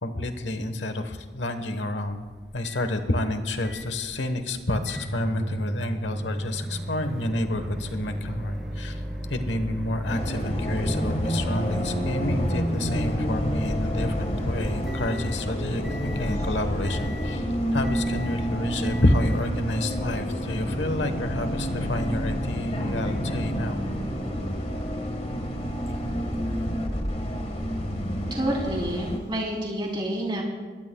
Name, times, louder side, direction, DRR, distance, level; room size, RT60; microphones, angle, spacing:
voice 1, 0.0-2.3 2.5-9.0 9.3-23.8, left 1 dB, 90° left, 8 dB, 1.2 m, -29 dB
Microwave oven, 2.0-20.0, right 1 dB, ahead, 2.7 m, -36 dB
Bus, 10.1-29.2, equal, 35° left, 1.5 m, -29 dB
voice 2, 28.3-30.4, right 1 dB, 25° right, -2 dB, 3.4 m, -28 dB
22.0 x 17.5 x 2.3 m, 1.4 s
head